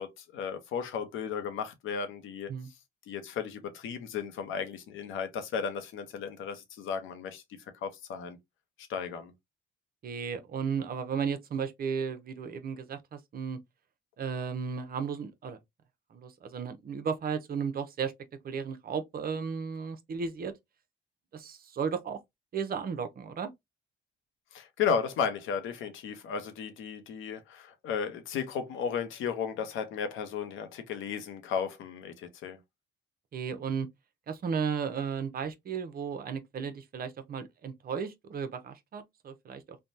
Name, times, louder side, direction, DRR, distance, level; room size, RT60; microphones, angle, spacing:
voice 1, 0.0-2.5 3.1-7.4 7.8-8.4 8.9-9.3 24.5-32.6, left 6 dB, 85° left, 0.8 m, -34 dB
voice 2, 10.0-13.6 14.2-15.6 16.1-18.1 18.4-20.5 21.3-22.2 22.5-23.5 33.3-33.9 34.3-39.8, right 6 dB, 50° right, 0.7 m, -34 dB
3.3 x 2.2 x 2.6 m
cardioid pair, 90°, 20 cm